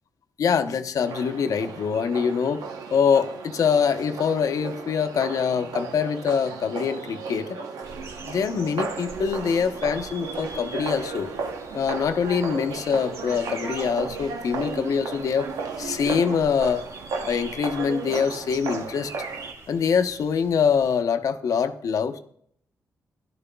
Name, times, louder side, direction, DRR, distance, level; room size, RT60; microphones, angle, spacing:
voice 1, 0.4-2.6 2.9-7.6 8.2-11.3 11.7-15.5 15.8-16.8 17.3-19.1 19.7-22.2, left 6 dB, 70° left, 9 dB, 0.8 m, -24 dB
sound 1, 1.1-19.5, right 5 dB, 85° right, 0.8 m, -35 dB
sound 2, 7.8-21.0, right 2 dB, 50° right, 1.3 m, -44 dB
13.5 x 11.0 x 2.3 m, 0.67 s
cardioid pair, 60°, 6 cm